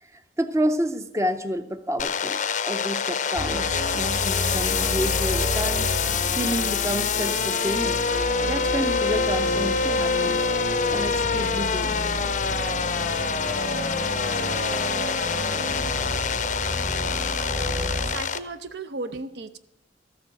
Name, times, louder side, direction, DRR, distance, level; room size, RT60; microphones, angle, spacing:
voice 1, 0.0-2.4 2.7-5.9 6.4-8.0 8.4-10.4 10.9-12.0, equal, 15° right, 9 dB, 0.5 m, -29 dB
sound 1, 2.0-18.4, left 6 dB, 45° left, 0.5 m, -26 dB
sound 2, 3.4-18.1, equal, 50° right, 2.1 m, -31 dB
voice 2, 18.0-19.6, right 3 dB, 70° right, 12 dB, 0.7 m, -35 dB
13.5 x 7.3 x 7.4 m, 0.86 s
head